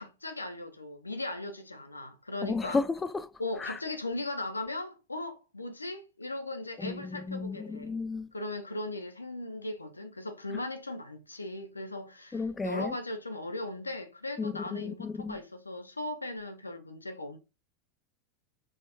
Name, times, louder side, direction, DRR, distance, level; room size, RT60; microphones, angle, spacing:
voice 1, 0.0-2.8 3.4-7.9 8.3-17.4, left 2 dB, 90° left, 0.6 m, -38 dB
voice 2, 2.4-3.3 3.6-3.7 6.8-7.0 7.3-8.3 12.3-12.9 14.4-15.4, left 4 dB, 15° left, 0.3 m, -33 dB
4.3 x 2.3 x 4.2 m
figure-of-eight pair, 85°, 0 cm